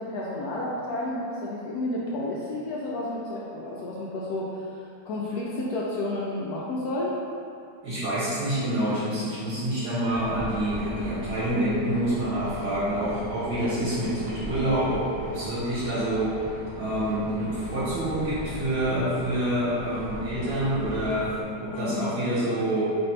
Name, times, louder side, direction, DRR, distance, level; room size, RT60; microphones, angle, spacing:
voice 1, 0.0-7.2 13.8-14.1 21.7-22.1, left 1 dB, 80° left, -6 dB, 0.8 m, -31 dB
voice 2, 7.8-16.3 16.7-21.3 21.6-23.0, right 1 dB, 80° right, -12 dB, 1.9 m, -27 dB
sound 1, 10.1-21.4, equal, 45° right, 1.0 m, -38 dB
4.1 x 2.6 x 4.3 m, 2.4 s
omnidirectional pair, 2.2 m